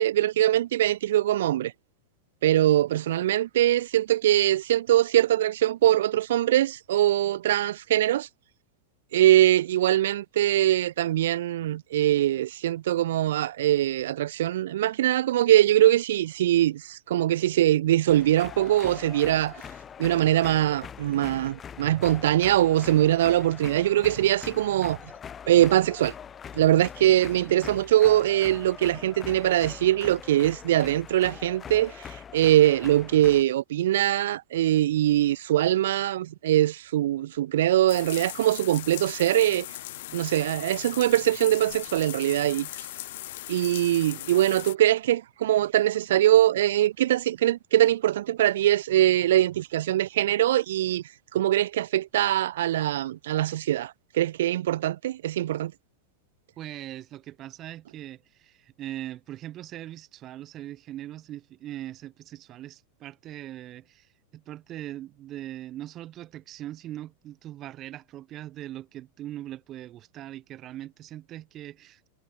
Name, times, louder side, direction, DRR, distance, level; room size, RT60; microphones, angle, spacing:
voice 1, 0.0-1.7 2.4-8.3 9.1-19.5 20.0-25.0 25.5-26.1 26.5-39.7 40.1-42.7 43.5-51.0 51.3-55.7, right 13 dB, 60° right, 0.4 m, -22 dB
sound 1, 18.1-33.4, left 8 dB, 20° left, 5.8 m, -42 dB
sound 2, 37.9-44.8, left 17 dB, 55° left, 3.6 m, -39 dB
voice 2, 56.6-72.1, right 13 dB, 35° right, 5.8 m, -40 dB
figure-of-eight pair, 90°, 0 cm